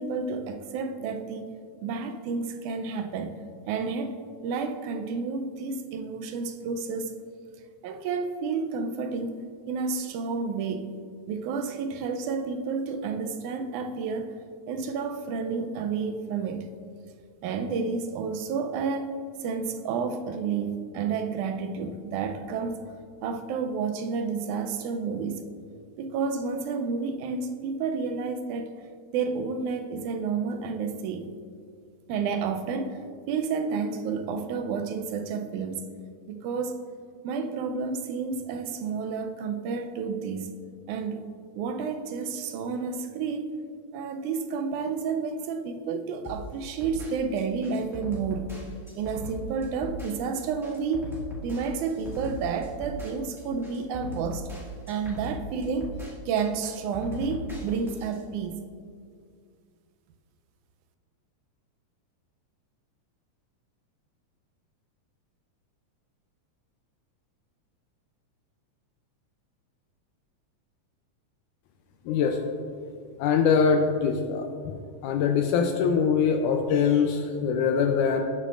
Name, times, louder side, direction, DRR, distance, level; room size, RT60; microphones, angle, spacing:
voice 1, 0.0-1.5 1.8-7.2 7.8-11.0 11.3-14.4 14.7-16.7 17.4-19.1 19.4-22.8 23.2-25.4 26.0-28.7 29.1-31.4 32.1-33.0 33.3-35.9 36.3-36.8 37.2-40.6 40.9-41.2 41.5-43.5 43.9-48.6 49.0-51.1 51.4-54.5 54.9-56.0 56.3-58.6, right 5 dB, 80° right, 7 dB, 2.0 m, -30 dB
sound 1, 46.2-58.2, equal, ahead, 1.0 m, -39 dB
voice 2, 72.1-72.6 73.2-74.5 75.0-78.2, left 6 dB, 85° left, 3 dB, 2.1 m, -23 dB
18.0 x 6.7 x 2.5 m, 2.2 s
omnidirectional pair, 3.5 m